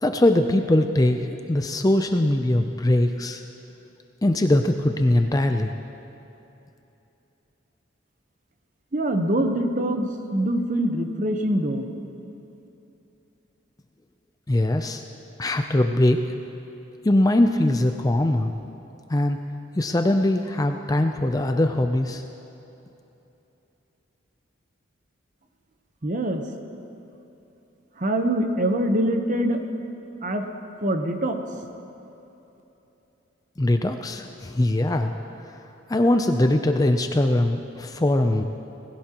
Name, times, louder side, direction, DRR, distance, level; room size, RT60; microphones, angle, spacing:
voice 1, 0.0-3.4 4.2-5.7 14.5-15.0 15.4-16.2 17.0-18.5 19.1-19.4 19.8-22.2 33.6-35.1 35.4-35.5 35.9-38.4, left 1 dB, 20° left, 6 dB, 0.4 m, -21 dB
voice 2, 8.9-11.9 26.0-26.4 28.0-29.6 30.2-30.5 30.8-31.4, right 1 dB, 40° right, 5 dB, 0.9 m, -24 dB
19.5 x 16.0 x 3.0 m, 3.0 s
head